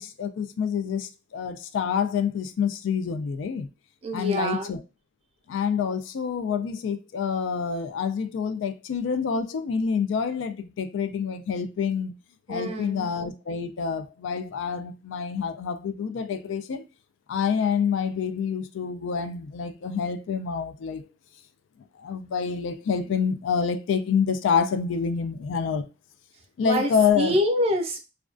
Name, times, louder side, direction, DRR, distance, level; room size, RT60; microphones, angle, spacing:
voice 1, 0.0-3.7 4.1-4.8 5.5-12.1 12.5-16.8 17.3-21.1 22.0-25.9 26.6-27.4, left 6 dB, 85° left, 0.3 m, -27 dB
voice 2, 4.0-4.7 12.5-13.1 26.6-26.9 27.2-28.0, equal, 35° right, 0.5 m, -25 dB
2.3 x 2.2 x 2.4 m
head